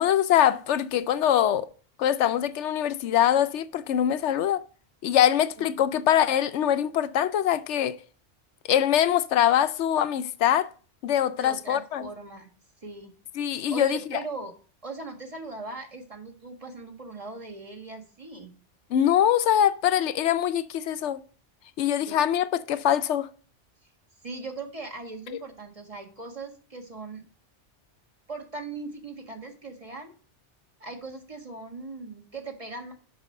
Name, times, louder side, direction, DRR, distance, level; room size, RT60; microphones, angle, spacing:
voice 1, 0.0-1.7 2.0-4.6 5.0-8.0 8.7-10.7 11.0-12.1 13.4-14.2 18.9-21.2 21.8-23.3 25.3-25.4, left 10 dB, 75° left, 0.9 m, -23 dB
voice 2, 11.4-12.5 12.8-13.1 13.7-14.5 14.8-18.5 22.1-22.2 24.2-27.2 28.3-30.1 30.8-32.9, right 3 dB, 30° right, 1.6 m, -39 dB
6.2 x 5.9 x 6.5 m
omnidirectional pair, 1.2 m